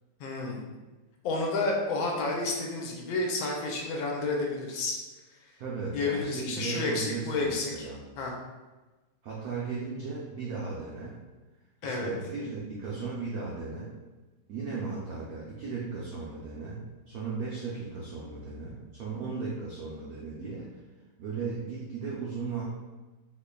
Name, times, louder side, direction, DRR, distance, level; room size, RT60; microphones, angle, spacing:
voice 1, 0.2-0.6 1.2-5.0 5.9-7.9 8.2-8.3 11.8-12.1, left 3 dB, 75° left, -1 dB, 1.4 m, -30 dB
voice 2, 5.6-8.0 9.2-11.2 11.8-13.9 14.5-20.7 21.2-22.6, right 4 dB, 85° right, -5 dB, 0.8 m, -36 dB
4.0 x 3.1 x 2.2 m, 1.2 s
omnidirectional pair, 2.3 m